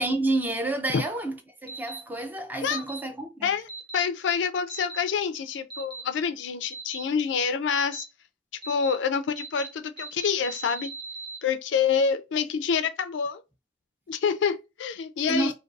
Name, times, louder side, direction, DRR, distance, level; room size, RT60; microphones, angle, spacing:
voice 1, 0.0-3.5 15.3-15.5, right 2 dB, 10° right, 0.3 m, -29 dB
sound 1, 1.7-2.0 2.7-3.0 3.7-4.0 4.7-5.0 5.7-6.0 6.7-7.0 7.7-8.0 8.6-8.9 9.4-9.7 10.0-11.4, right 3 dB, 25° right, 1.0 m, -38 dB
voice 2, 3.4-8.1 8.7-10.9 11.4-13.4 14.1-15.5, left 6 dB, 75° left, 0.3 m, -27 dB
2.5 x 2.3 x 2.3 m
head